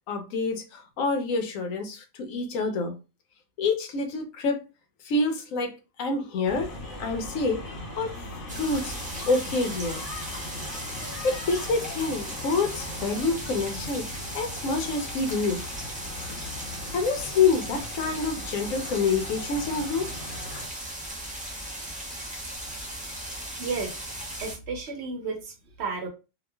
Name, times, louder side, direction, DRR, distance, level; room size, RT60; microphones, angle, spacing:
voice 1, 0.1-2.9 3.6-4.6 5.0-6.7 7.0-8.1 8.6-8.9 9.3-10.0 11.2-15.6 16.9-20.1, left 4 dB, 80° left, 1.0 m, -27 dB
sound 1, 6.4-20.7, left 2 dB, 65° left, 1.2 m, -39 dB
sound 2, 8.5-24.5, right 1 dB, 10° right, 0.5 m, -37 dB
voice 2, 23.6-24.1 24.4-26.1, right 4 dB, 60° right, 0.8 m, -33 dB
2.8 x 2.3 x 2.2 m
omnidirectional pair, 1.4 m